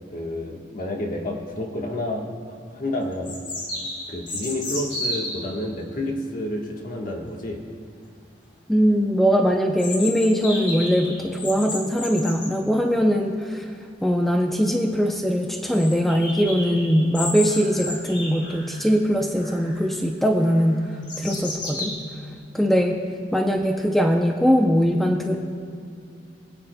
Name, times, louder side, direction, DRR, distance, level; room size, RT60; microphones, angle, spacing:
voice 1, 0.1-2.4 2.7-3.4 4.1-7.6, left 1 dB, 45° left, 0 dB, 1.3 m, -29 dB
sound 1, 2.3-2.4 3.2-5.5 9.8-12.5 14.2-14.3 14.5-14.6 15.0-15.1 15.7-18.9 19.4-19.9 20.4-21.9, left 2 dB, 65° left, 2.8 m, -33 dB
voice 2, 8.7-13.7 14.0-20.8 21.2-21.9 22.5-23.0 23.3-25.4, equal, ahead, 2 dB, 0.5 m, -21 dB
25.5 x 8.6 x 2.2 m, 2.4 s
head